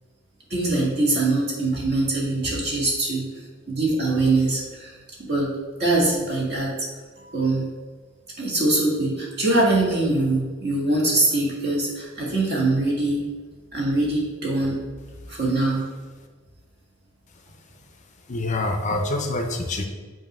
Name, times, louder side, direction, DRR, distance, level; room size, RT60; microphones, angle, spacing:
voice 1, 0.5-3.2 3.7-5.5 5.8-6.9 7.2-7.7 8.4-13.3 13.7-14.8 15.3-15.8, right 2 dB, 50° right, -4 dB, 1.9 m, -23 dB
voice 2, 18.3-19.9, left 2 dB, 35° left, 4 dB, 0.6 m, -26 dB
7.5 x 2.7 x 5.4 m, 1.4 s
head